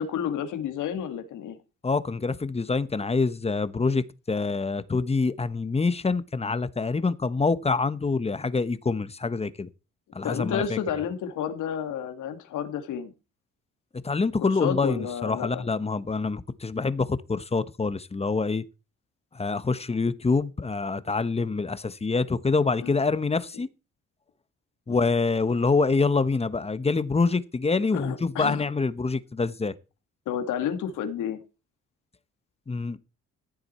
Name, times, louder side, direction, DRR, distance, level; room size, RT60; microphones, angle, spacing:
voice 1, 0.0-1.6 10.2-13.1 14.4-15.7 22.8-23.0 24.9-25.1 27.9-28.6 30.3-31.4, left 8 dB, 85° left, 2.1 m, -31 dB
voice 2, 1.8-9.7 10.1-10.8 14.0-18.6 19.3-23.7 24.9-29.7 32.7-33.0, left 4 dB, 20° left, 1.0 m, -26 dB
14.5 x 7.8 x 4.3 m
cardioid pair, 90°, 30 cm